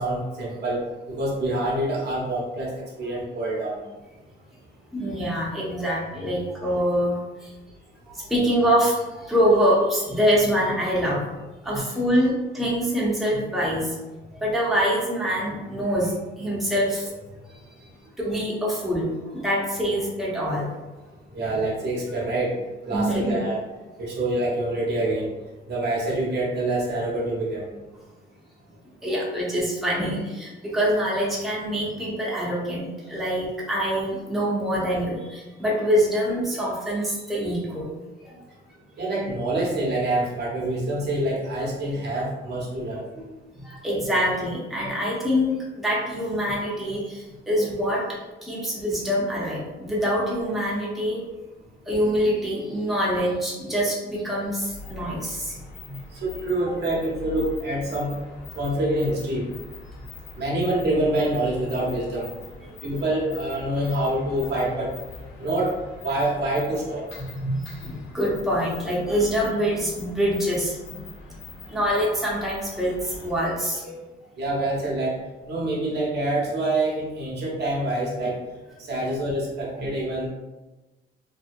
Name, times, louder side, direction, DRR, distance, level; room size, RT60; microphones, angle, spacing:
voice 1, 0.0-3.8 21.3-22.6 22.9-23.6 24.0-25.3 25.7-27.7 39.0-43.0 56.2-58.1 58.6-59.4 60.4-62.3 62.8-64.9 65.4-65.7 66.0-67.0 74.4-75.2 75.5-78.4 78.8-80.3, right 1 dB, 55° right, -4 dB, 0.9 m, -26 dB
voice 2, 4.9-7.5 8.1-11.3 11.6-14.0 14.3-17.2 18.2-20.7 22.9-23.4 29.0-37.9 38.2-38.4 43.6-48.0 48.4-51.2 51.9-55.6 55.9-56.0 56.7-56.8 62.6-62.7 67.4-71.0 71.7-74.0 79.0-79.2 79.8-79.9, equal, ahead, -6 dB, 0.8 m, -25 dB
sound 1, 54.6-73.5, left 3 dB, 80° left, 0.5 m, -43 dB
2.7 x 2.0 x 2.5 m, 1.1 s
cardioid pair, 90°, 20 cm